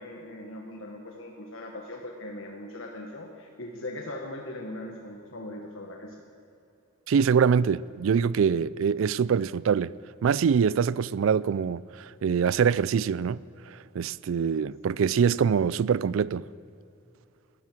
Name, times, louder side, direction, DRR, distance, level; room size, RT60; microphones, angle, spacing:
voice 1, 0.0-6.2, left 1 dB, 70° left, 1.3 m, -40 dB
voice 2, 7.1-9.9 10.2-13.4 13.7-16.5, right 6 dB, 70° right, 0.4 m, -24 dB
18.0 x 13.0 x 6.1 m
head